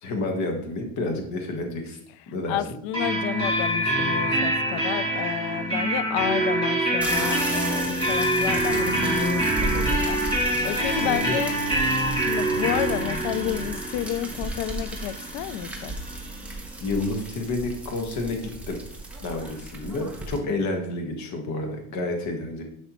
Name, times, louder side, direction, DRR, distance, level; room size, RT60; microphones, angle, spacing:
voice 1, 0.0-2.0 2.3-2.6 10.5-11.4 16.8-18.8 19.2-22.6, left 2 dB, 40° left, 3 dB, 1.4 m, -30 dB
voice 2, 2.5-11.5 12.2-16.0, left 12 dB, 70° left, 15 dB, 0.6 m, -31 dB
sound 1, 2.9-16.5, right 1 dB, 15° left, 1.9 m, -25 dB
sound 2, 7.0-20.4, right 2 dB, 5° right, 0.9 m, -35 dB
11.0 x 5.5 x 3.0 m, 0.70 s
cardioid pair, 175°, 41 cm